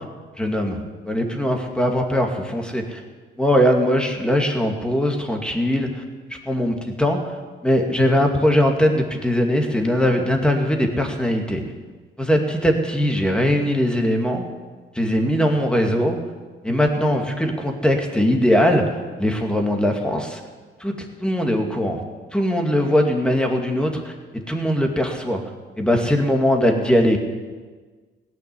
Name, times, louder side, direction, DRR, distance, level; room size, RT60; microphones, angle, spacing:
voice 1, 0.4-0.8 1.0-3.0 3.4-6.0 6.5-7.2 7.6-11.6 12.2-14.4 15.0-16.2 16.6-18.8 19.2-20.4 20.8-20.9 21.2-22.0 22.3-24.1 24.5-25.4 25.8-27.2, equal, 5° left, 2 dB, 2.2 m, -20 dB
17.0 x 6.2 x 9.6 m, 1.4 s
cardioid pair, 90°, 20 cm